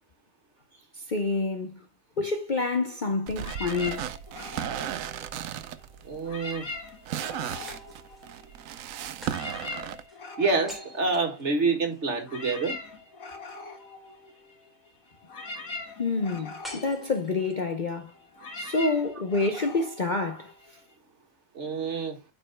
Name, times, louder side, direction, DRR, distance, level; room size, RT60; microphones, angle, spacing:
voice 1, 1.1-1.8 2.2-4.0 16.0-18.1 18.5-20.5, left 3 dB, 40° left, 0.8 m, -28 dB
sound 1, 3.3-10.0, right 10 dB, 80° right, 1.0 m, -36 dB
sound 2, 3.4-5.8 6.2-8.7 9.0-20.9, left 3 dB, 85° left, 2.1 m, -42 dB
voice 2, 6.1-6.7 10.4-12.8 21.6-22.2, right 4 dB, 55° right, 2.1 m, -27 dB
sound 3, 7.7-8.4 9.2-12.1 16.6-17.7, equal, ahead, 3.3 m, -48 dB
13.0 x 5.4 x 2.2 m
omnidirectional pair, 1.4 m